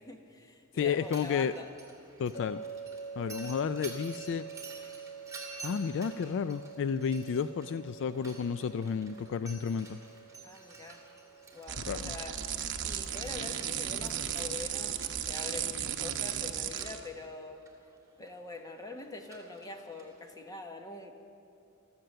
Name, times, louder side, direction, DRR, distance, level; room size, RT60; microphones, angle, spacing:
voice 1, 0.0-1.7 3.2-3.3 10.4-11.0 11.5-12.4 12.8-17.6 18.2-21.1, left 2 dB, 15° left, 4 dB, 1.2 m, -44 dB
voice 2, 0.7-1.5 2.2-2.6 3.2-4.4 5.6-10.0 11.8-12.1, left 7 dB, 60° left, 13 dB, 0.3 m, -32 dB
Mechanisms, 0.9-20.5, right 3 dB, 15° right, 2.6 m, -52 dB
sound 1, 2.3-15.5, right 5 dB, 35° left, 1.1 m, -48 dB
sound 2, 11.7-17.0, right 9 dB, 60° right, 0.8 m, -35 dB
15.5 x 13.5 x 6.7 m, 2.6 s
head